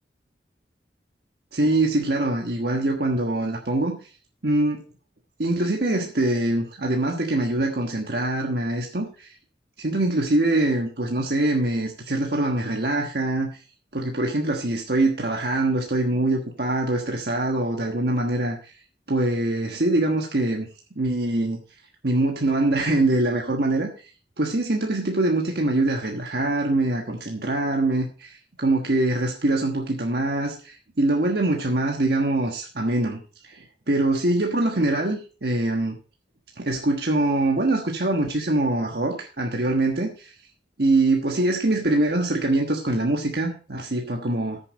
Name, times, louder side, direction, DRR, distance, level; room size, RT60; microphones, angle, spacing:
voice 1, 1.5-4.0 4.4-4.8 5.4-9.3 9.8-13.5 13.9-18.7 19.1-20.7 21.0-21.6 22.0-23.9 24.4-36.0 36.6-40.3 40.8-44.6, right 2 dB, 65° right, 1 dB, 1.3 m, -23 dB
14.0 x 7.0 x 4.0 m, 0.36 s
head